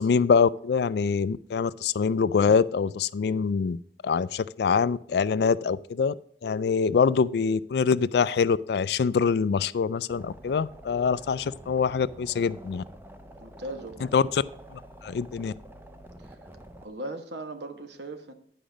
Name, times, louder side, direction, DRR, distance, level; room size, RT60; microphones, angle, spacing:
voice 1, 0.0-3.8 4.0-6.1 6.4-12.8 14.1-14.4 14.7-15.5, left 5 dB, 65° left, 18 dB, 0.3 m, -24 dB
sound 1, 10.1-16.9, right 1 dB, 10° right, 0.6 m, -47 dB
voice 2, 13.4-14.1 16.2-16.4 16.8-18.3, right 1 dB, 80° right, 7 dB, 1.2 m, -38 dB
10.5 x 5.1 x 5.0 m, 0.63 s
head